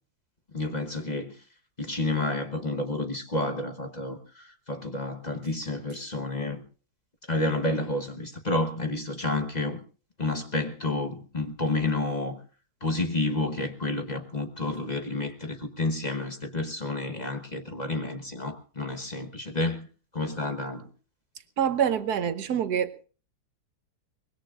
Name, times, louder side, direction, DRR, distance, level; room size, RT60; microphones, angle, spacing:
voice 1, 0.5-1.3 1.8-6.6 7.3-9.8 10.2-12.4 12.8-19.9 20.1-20.9, left 2 dB, 30° left, 1.0 m, -30 dB
voice 2, 21.6-23.0, right 8 dB, 65° right, 1.4 m, -26 dB
23.5 x 20.5 x 2.5 m
omnidirectional pair, 1.8 m